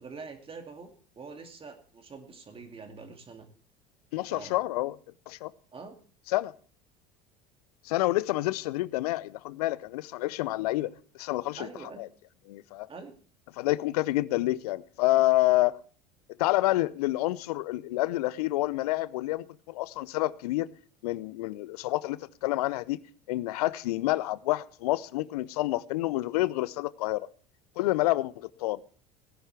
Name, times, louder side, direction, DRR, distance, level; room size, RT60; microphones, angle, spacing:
voice 1, 0.0-3.5 4.3-4.5 5.7-6.0 11.6-12.0 12.9-13.1, right 4 dB, 25° right, 2.4 m, -45 dB
voice 2, 4.1-5.0 5.3-5.5 6.3-6.5 7.8-11.7 12.0-12.1 12.5-12.9 13.6-15.8 16.4-20.7 21.0-23.0 23.3-27.3 27.8-28.8, left 17 dB, 65° left, 0.6 m, -28 dB
18.0 x 10.5 x 3.3 m
figure-of-eight pair, 70°, 21 cm